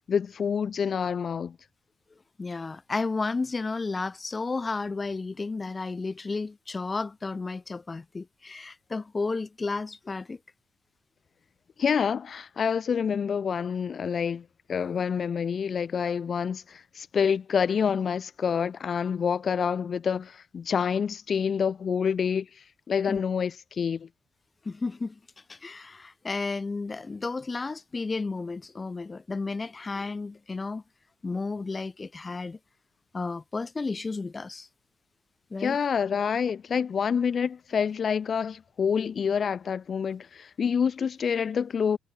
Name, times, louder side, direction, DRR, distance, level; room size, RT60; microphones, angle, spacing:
voice 1, 0.1-1.6 11.8-22.5 22.9-24.1 35.6-42.0, left 7 dB, 45° left, 0.4 m, -27 dB
voice 2, 2.4-10.4 23.1-23.2 24.6-25.2 25.5-30.8 31.2-32.6 33.1-34.7 35.5-35.8, left 3 dB, 25° left, 0.8 m, -32 dB
cardioid pair, 90°, 0 cm